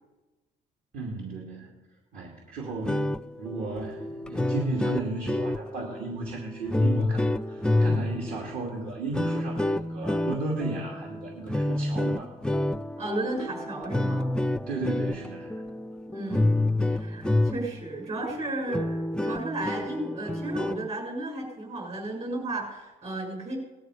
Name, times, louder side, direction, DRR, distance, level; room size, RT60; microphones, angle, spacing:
voice 1, 0.9-1.7 2.1-12.3 14.6-15.6, right 3 dB, 60° right, -1 dB, 2.8 m, -35 dB
sound 1, 2.7-17.9 18.3-18.4 18.7-20.9, left 1 dB, 5° left, 0.4 m, -28 dB
voice 2, 13.0-14.3 16.1-16.6 16.9-23.6, right 2 dB, 40° right, 0 dB, 6.8 m, -33 dB
19.0 x 13.0 x 5.0 m, 1.1 s
cardioid pair, 110°, 17 cm